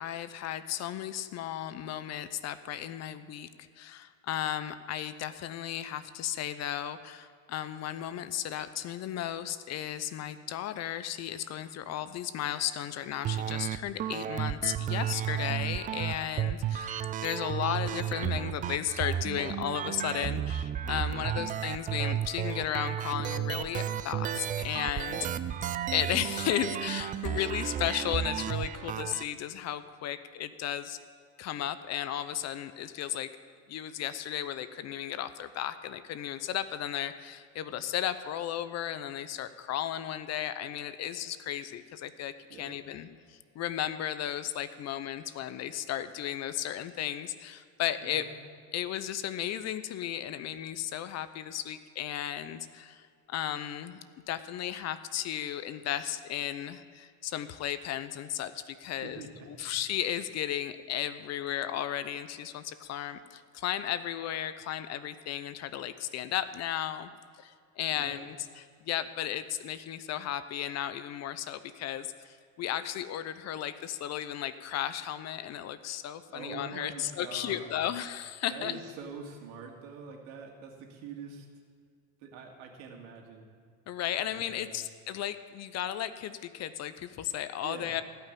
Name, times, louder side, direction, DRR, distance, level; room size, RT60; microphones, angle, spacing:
voice 1, 0.0-3.5 3.8-25.3 25.9-31.0 31.4-33.3 33.7-48.3 48.7-54.0 54.3-67.1 67.4-78.8 83.9-88.0, left 11 dB, 40° left, 13 dB, 0.7 m, -35 dB
sound 1, 13.2-29.2, right 10 dB, 20° right, 0.3 m, -33 dB
voice 2, 16.3-16.7 21.1-21.5 25.1-25.2 42.5-42.8 48.0-48.3 59.0-59.5 67.9-68.2 76.3-77.8 78.5-81.5 82.2-83.5 84.2-84.8 87.6-88.0, right 5 dB, 70° right, 1 dB, 2.6 m, -45 dB
17.0 x 5.8 x 9.2 m, 2.1 s
supercardioid pair, 110°, 40 cm